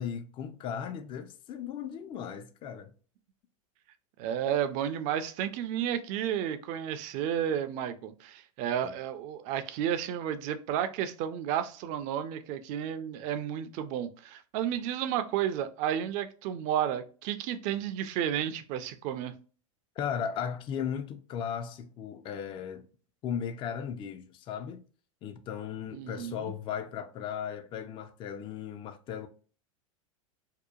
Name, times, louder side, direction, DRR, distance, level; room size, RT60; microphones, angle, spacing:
voice 1, 0.0-2.9 20.0-22.9 23.2-24.8 25.2-29.3, left 8 dB, 30° left, 0.4 m, -36 dB
voice 2, 4.2-19.3 25.9-26.5, right 10 dB, 45° right, 0.4 m, -32 dB
2.8 x 2.1 x 2.3 m
hypercardioid pair, 100°, 18 cm